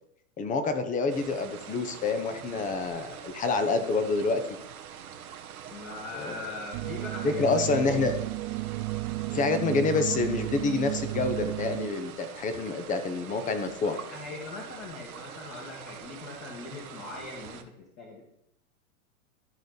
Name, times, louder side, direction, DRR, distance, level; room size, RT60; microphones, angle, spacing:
voice 1, 0.4-4.4 6.2-6.4 7.2-8.2 9.3-14.0, left 3 dB, 20° left, 9 dB, 0.9 m, -27 dB
sound 1, 1.1-17.6, right 8 dB, 85° right, 1.2 m, -45 dB
voice 2, 5.7-8.1 13.9-18.2, left 3 dB, 35° left, -2 dB, 2.1 m, -41 dB
sound 2, 6.7-11.9, right 19 dB, 40° right, 0.4 m, -33 dB
13.5 x 5.1 x 4.0 m, 0.77 s
hypercardioid pair, 130°, 42 cm